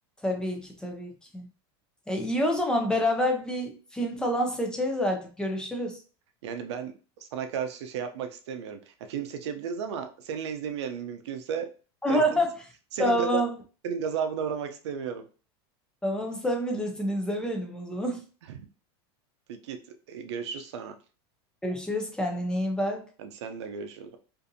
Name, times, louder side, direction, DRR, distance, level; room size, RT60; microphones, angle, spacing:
voice 1, 0.2-1.5 2.1-6.0 12.0-12.5 13.0-13.5 16.0-18.2 21.6-23.0, equal, 5° left, 2 dB, 0.4 m, -27 dB
voice 2, 6.4-6.9 7.2-11.7 12.1-12.4 12.9-13.4 13.8-15.2 18.4-18.7 19.5-19.8 20.1-21.0 23.2-24.2, right 7 dB, 85° right, 7 dB, 0.5 m, -34 dB
2.6 x 2.5 x 2.6 m, 0.36 s
supercardioid pair, 150°, 14 cm